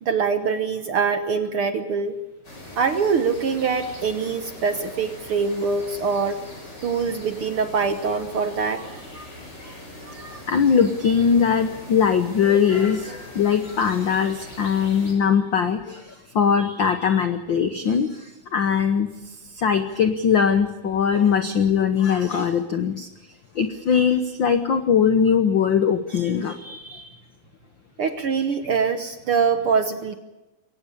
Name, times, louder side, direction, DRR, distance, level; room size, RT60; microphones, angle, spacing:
voice 1, 0.0-2.2 2.8-6.4 6.8-9.3 9.6-9.7 10.0-10.4 28.0-30.2, right 5 dB, 60° right, 9 dB, 1.5 m, -24 dB
sound 1, 2.4-15.1, left 1 dB, 30° left, 6.9 m, -41 dB
voice 2, 10.5-23.1 23.5-27.1, left 7 dB, 70° left, 8 dB, 1.1 m, -21 dB
22.5 x 18.5 x 8.6 m, 1.0 s
omnidirectional pair, 3.7 m